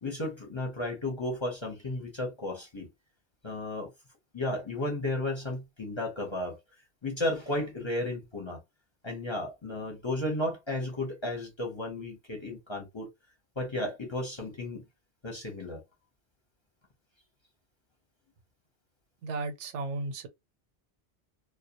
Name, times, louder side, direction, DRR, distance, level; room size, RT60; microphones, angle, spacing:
voice 1, 0.0-2.9 3.4-3.9 4.3-6.6 7.0-8.6 9.0-13.1 13.6-14.8 15.2-15.8, left 1 dB, 30° left, 0.7 m, -33 dB
voice 2, 19.2-20.3, right 3 dB, 85° right, 0.9 m, -34 dB
2.2 x 2.1 x 2.8 m
omnidirectional pair, 1.2 m